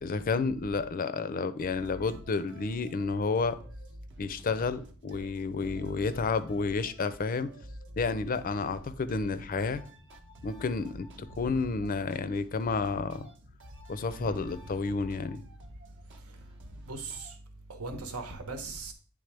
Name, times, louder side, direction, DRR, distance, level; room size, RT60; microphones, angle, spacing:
voice 1, 0.0-3.6 4.2-7.5 8.0-9.8 10.4-13.2 13.9-15.4, left 4 dB, 40° left, 0.4 m, -31 dB
sound 1, 1.6-17.4, equal, 55° right, 0.8 m, -50 dB
voice 2, 16.9-17.3 17.7-18.9, right 3 dB, 85° right, 1.1 m, -38 dB
9.3 x 3.5 x 3.4 m
head